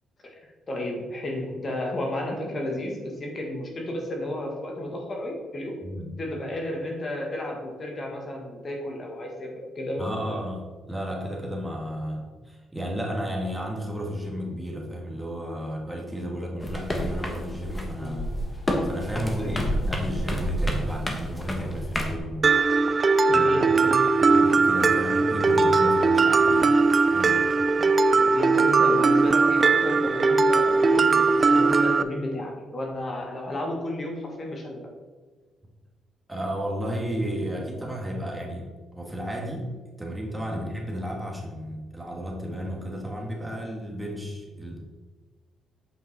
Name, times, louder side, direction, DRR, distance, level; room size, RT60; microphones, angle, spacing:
voice 1, 0.4-5.8 6.2-10.5 18.0-18.4 19.4-19.7 23.3-24.1 27.8-34.9 40.5-40.7, left 1 dB, 40° left, 0 dB, 1.6 m, -32 dB
voice 2, 5.8-6.1 10.0-18.2 18.8-22.6 23.1-23.9 24.2-26.8 27.1-27.5 36.3-38.7 39.0-39.7 40.0-44.8, equal, 10° right, 0 dB, 1.8 m, -33 dB
sound 1, 16.6-22.2, equal, 20° left, 1.3 m, -29 dB
Mallet percussion, 22.4-32.0, right 4 dB, 35° right, 0.4 m, -20 dB
7.9 x 5.4 x 4.2 m, 1.4 s
cardioid pair, 90°, 0 cm